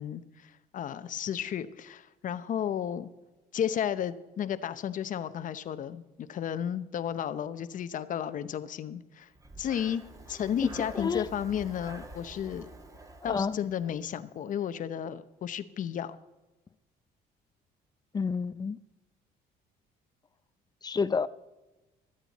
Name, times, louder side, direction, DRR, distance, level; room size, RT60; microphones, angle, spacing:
voice 1, 0.0-3.1 3.5-9.3 9.6-10.0 10.3-12.7 13.2-16.2, left 9 dB, 50° left, 0.8 m, -33 dB
Breathing, 9.3-14.3, right 2 dB, 20° right, 1.8 m, -47 dB
voice 2, 10.6-11.3 13.2-13.6 18.1-18.8 20.8-21.3, left 5 dB, 25° left, 0.5 m, -29 dB
24.0 x 9.0 x 4.1 m
cardioid pair, 110°, 17 cm